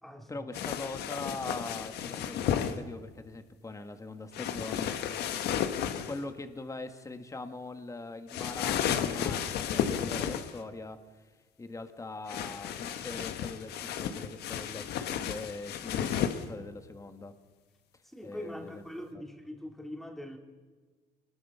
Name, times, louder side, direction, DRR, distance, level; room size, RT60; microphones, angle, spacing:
voice 1, 0.3-5.0 6.1-11.3 11.6-17.3 18.2-18.8, left 3 dB, 20° left, 8 dB, 1.7 m, -42 dB
sound 1, 0.5-2.7 4.3-6.2 8.3-10.6 12.3-16.4, left 9 dB, 75° left, 1.4 m, -33 dB
voice 2, 18.0-20.4, left 1 dB, ahead, 3 dB, 2.9 m, -42 dB
26.5 x 21.0 x 5.7 m, 1.4 s
cardioid pair, 110°, 17 cm